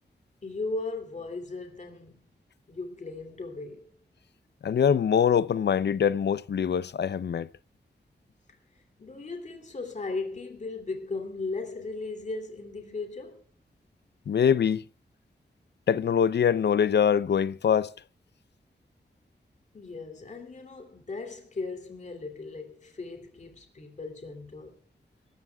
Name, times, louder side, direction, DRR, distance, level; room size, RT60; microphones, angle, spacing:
voice 1, 0.4-2.2 2.7-3.9 8.5-13.4 19.7-24.7, left 3 dB, 45° left, 2.8 m, -37 dB
voice 2, 4.6-7.5 14.3-14.8 15.9-17.9, left 8 dB, 80° left, 0.6 m, -23 dB
25.0 x 14.5 x 2.4 m
wide cardioid pair, 150°, 17 cm